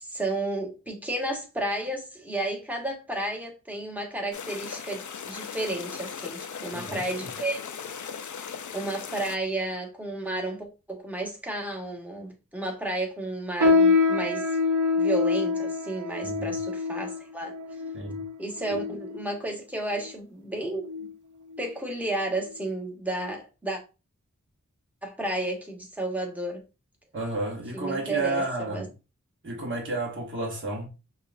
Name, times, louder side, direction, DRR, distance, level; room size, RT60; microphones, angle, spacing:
voice 1, 0.0-7.6 8.7-14.5 14.9-17.5 18.4-21.1 21.6-23.8 25.0-26.6 27.7-28.4 28.7-28.8, right 1 dB, 5° right, 1.2 m, -32 dB
sound 1, 4.3-9.4, left 7 dB, 75° left, 0.4 m, -38 dB
voice 2, 6.7-7.3 16.2-16.6 17.9-18.2 18.7-18.8 27.1-28.9 29.4-30.9, right 2 dB, 40° right, 1.1 m, -32 dB
sound 2, 13.6-19.3 19.9-20.1 20.8-21.1 21.5-21.7 22.4-22.5, left 4 dB, 80° right, 0.7 m, -25 dB
5.4 x 2.3 x 2.5 m
wide cardioid pair, 50°, 30 cm